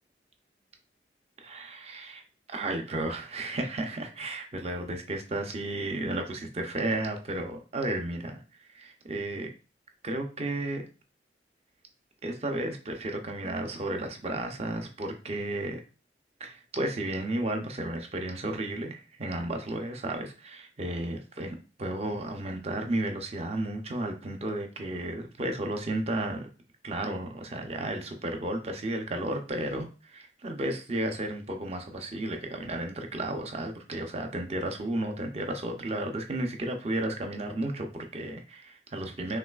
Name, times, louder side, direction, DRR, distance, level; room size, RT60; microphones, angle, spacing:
voice 1, 1.4-2.2 2.5-9.5 10.0-10.8 12.2-15.8 16.4-26.5 26.8-39.4, right 1 dB, 35° right, 4 dB, 0.7 m, -33 dB
5.7 x 3.0 x 2.4 m, 0.34 s
head